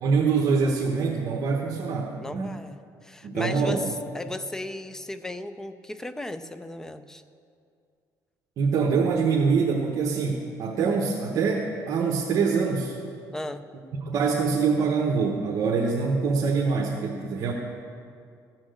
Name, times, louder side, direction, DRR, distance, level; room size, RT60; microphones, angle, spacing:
voice 1, 0.0-2.5 3.2-3.8 8.6-13.0 14.0-17.5, right 5 dB, 50° right, -1 dB, 1.1 m, -24 dB
voice 2, 2.2-3.8 4.1-7.2 13.3-13.7, left 1 dB, 5° left, 11 dB, 0.4 m, -35 dB
14.5 x 6.2 x 7.7 m, 2.3 s
cardioid pair, 150°, 7 cm